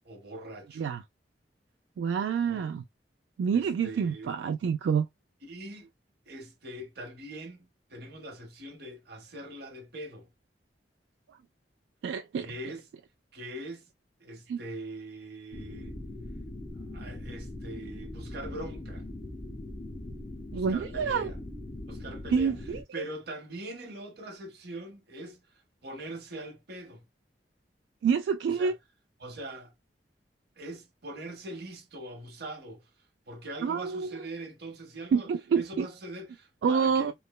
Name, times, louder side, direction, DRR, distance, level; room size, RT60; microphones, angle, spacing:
voice 1, 0.0-0.9 2.5-2.6 3.5-4.3 5.4-5.9 6.3-10.3 12.4-12.9 13.3-13.9 14.2-16.0 16.9-19.1 20.5-21.4 21.9-22.6 22.9-27.1 28.5-28.7 29.2-29.7 30.6-32.9 33.3-37.1, right 1 dB, 65° right, 0.9 m, -42 dB
voice 2, 2.0-2.8 3.4-5.1 12.0-12.5 14.5-14.6 20.5-21.3 22.3-23.0 28.0-28.7 33.6-34.2 35.1-35.9 36.6-37.1, right 6 dB, 85° right, 0.3 m, -27 dB
sound 1, 15.5-22.8, left 1 dB, 40° left, 0.7 m, -41 dB
3.2 x 2.0 x 2.2 m
head